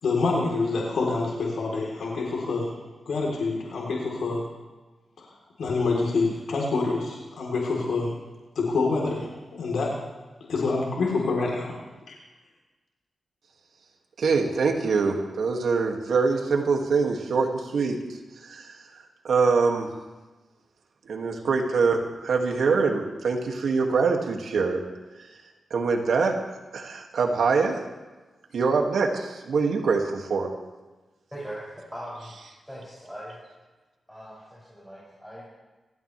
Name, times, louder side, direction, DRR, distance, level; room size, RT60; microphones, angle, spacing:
voice 1, 0.0-2.8 3.1-4.4 5.2-5.3 5.6-8.1 8.6-9.9 10.5-11.7 12.1-12.2, left 3 dB, 85° left, -2 dB, 3.9 m, -26 dB
voice 2, 14.2-18.0 18.4-18.8 19.2-19.9 21.1-24.8 25.7-26.4 26.7-27.8 28.5-30.5, right 4 dB, 80° right, 2 dB, 2.4 m, -24 dB
voice 3, 31.3-32.3 32.6-33.4 34.1-35.4, equal, 5° left, -8 dB, 7.2 m, -40 dB
26.0 x 15.5 x 3.5 m, 1.2 s
cardioid pair, 70°, 0 cm